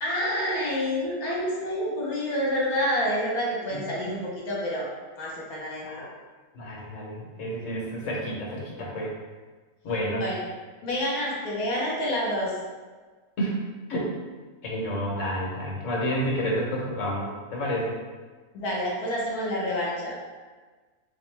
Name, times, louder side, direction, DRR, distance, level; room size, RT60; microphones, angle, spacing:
voice 1, 0.0-4.9 5.2-6.1 10.2-10.4 10.8-12.6 18.5-20.2, equal, 75° left, -3 dB, 1.4 m, -28 dB
voice 2, 3.7-4.2 5.8-6.1 6.5-9.1 9.8-10.2 13.4-13.6 13.9-14.1 14.6-18.0, equal, 60° left, -3 dB, 1.2 m, -30 dB
4.0 x 2.8 x 3.2 m, 1.4 s
omnidirectional pair, 1.6 m